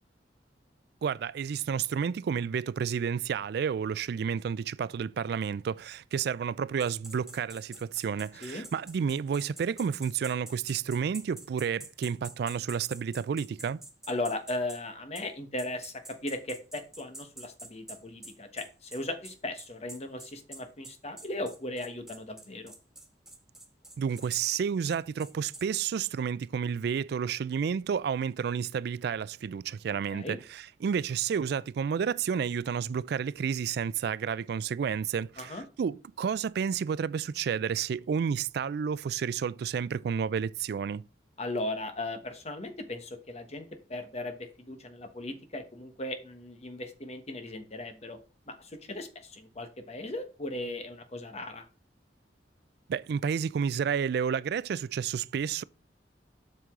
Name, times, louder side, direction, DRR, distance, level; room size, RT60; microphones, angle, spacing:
voice 1, 1.0-13.8 24.0-41.0 52.9-55.6, right 7 dB, 60° right, 0.3 m, -31 dB
sound 1, 6.8-14.8 15.1-15.3 15.6-25.7, right 2 dB, 5° right, 1.2 m, -47 dB
voice 2, 14.1-22.7 30.1-30.4 35.4-35.6 41.4-48.2 48.5-51.7, left 2 dB, 35° left, 1.2 m, -37 dB
7.7 x 6.7 x 3.7 m
head